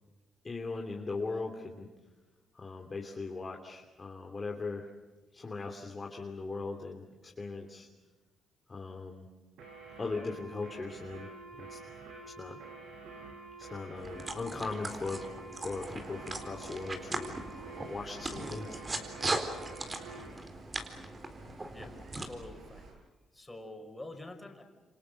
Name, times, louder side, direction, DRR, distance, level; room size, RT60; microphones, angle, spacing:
voice 1, 0.4-1.9 2.5-4.9 5.3-7.9 8.7-9.2 10.0-11.3 11.6-11.8 12.4-12.6 13.7-15.2 15.5-17.3 17.9-18.8, left 3 dB, 30° left, 1 dB, 2.9 m, -39 dB
sound 1, 9.6-20.3, right 3 dB, 85° right, 7.0 m, -48 dB
sound 2, 14.0-22.3, right 2 dB, 30° right, 4.2 m, -39 dB
sound 3, 15.7-22.9, right 3 dB, 65° right, 7.4 m, -55 dB
voice 2, 21.6-22.9 23.3-24.6, left 2 dB, 15° left, 4 dB, 5.7 m, -47 dB
28.5 x 27.0 x 6.6 m, 1.2 s
cardioid pair, 85°, 0 cm